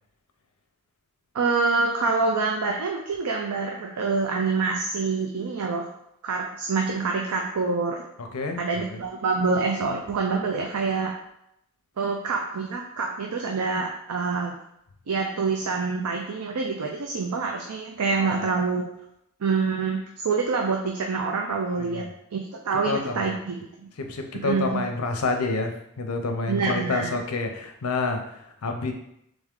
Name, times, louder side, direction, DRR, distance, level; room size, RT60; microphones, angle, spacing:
voice 1, 1.3-5.8 6.2-8.0 8.6-11.1 12.0-14.6 15.1-18.9 19.4-22.1 22.3-23.9 24.4-24.8 26.5-27.1, right 4 dB, 85° right, 1 dB, 0.5 m, -26 dB
voice 2, 8.2-9.0 18.2-18.3 21.7-22.1 22.9-23.4 24.0-28.9, left 3 dB, 80° left, 5 dB, 0.6 m, -29 dB
3.5 x 3.5 x 3.6 m, 0.78 s
head